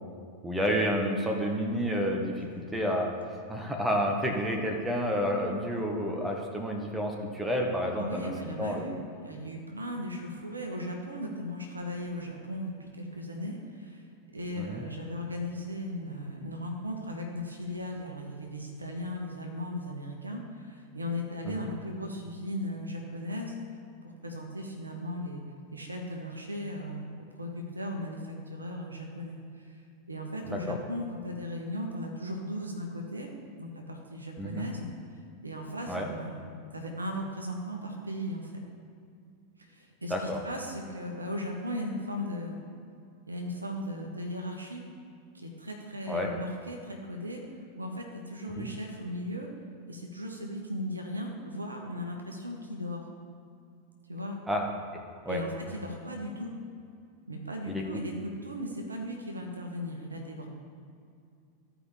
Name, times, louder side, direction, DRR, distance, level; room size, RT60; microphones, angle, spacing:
voice 1, 0.4-2.5 2.7-3.1 3.5-8.3 8.6-8.9 14.6-14.8 21.5-21.7 30.5-30.8 34.4-34.7 35.9-36.1 40.1-40.4 46.1-46.3 48.6-48.7 54.5-54.7 55.2-55.4 57.7-57.8, equal, 5° right, 1 dB, 1.1 m, -30 dB
voice 2, 7.9-14.0 14.3-23.6 24.0-25.4 25.7-27.1 27.3-29.8 30.1-33.3 33.6-34.9 35.4-36.4 36.7-38.6 39.6-42.6 43.3-44.8 45.3-47.4 47.8-49.5 49.9-53.1 54.1-54.4 55.3-56.5 57.3-60.5, left 1 dB, 80° right, 1 dB, 1.1 m, -37 dB
14.5 x 5.1 x 3.2 m, 2.4 s
figure-of-eight pair, 90°, 0 cm